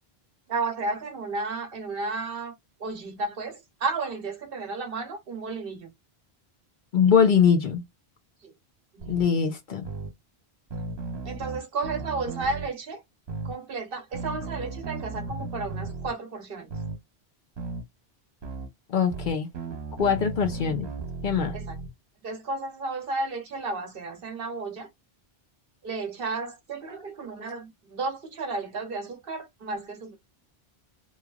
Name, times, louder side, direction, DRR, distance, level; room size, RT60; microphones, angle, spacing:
voice 1, 0.5-2.5 2.8-5.9 11.2-13.0 13.4-16.7 21.6-21.8 22.2-24.9 25.8-30.2, right 3 dB, 65° right, 1.1 m, -33 dB
voice 2, 6.9-7.8 9.1-9.9 18.9-19.5 20.0-20.9 21.2-21.6, left 7 dB, 60° left, 0.7 m, -22 dB
sound 1, 9.0-9.2 9.8-10.1 10.7-12.7 13.3-13.5 14.1-16.1 16.7-17.0 17.6-17.8 18.4-18.7 19.1-21.9, right 3 dB, 85° right, 1.2 m, -35 dB
3.0 x 2.4 x 2.3 m
omnidirectional pair, 1.1 m